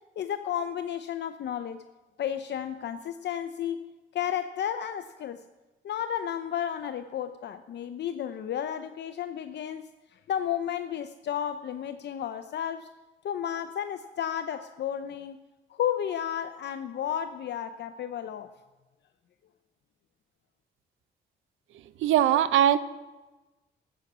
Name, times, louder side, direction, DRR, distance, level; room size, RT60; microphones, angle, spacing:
voice 1, 0.2-1.8 2.2-3.9 4.1-5.4 5.8-12.9 13.2-15.4 15.7-18.5, left 9 dB, 60° left, 9 dB, 0.6 m, -32 dB
voice 2, 22.0-22.8, right 11 dB, 85° right, 15 dB, 0.7 m, -20 dB
14.0 x 8.1 x 6.0 m, 1.2 s
cardioid pair, 90°, 20 cm